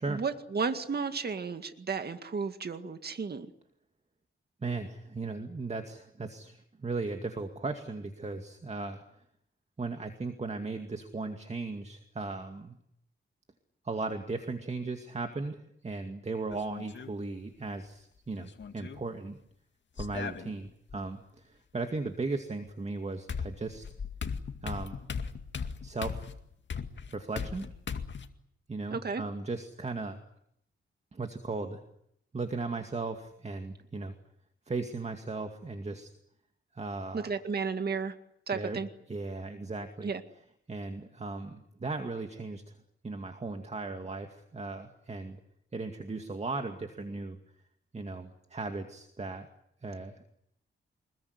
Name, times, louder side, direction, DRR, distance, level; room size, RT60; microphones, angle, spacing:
voice 1, 0.0-3.5 28.9-29.2 37.1-38.2 38.5-38.9 40.0-40.2, right 5 dB, 50° right, 8 dB, 2.0 m, -33 dB
voice 2, 4.6-9.0 9.8-12.7 13.8-19.4 20.0-23.9 24.6-25.0 25.8-26.3 27.1-27.7 28.7-30.2 31.1-31.8 32.3-34.1 34.7-36.1 36.7-37.4 38.5-38.8 39.1-40.1 40.7-42.7 43.0-45.4 45.7-47.4 47.9-49.5 49.8-50.2, right 3 dB, 30° right, 5 dB, 2.2 m, -37 dB
sound 1, 16.5-17.1 18.4-19.0 20.0-21.0 22.7-22.8 23.3-28.3, left 6 dB, 60° left, 2.2 m, -38 dB
25.5 x 21.5 x 9.8 m, 0.73 s
wide cardioid pair, 115°, 21 cm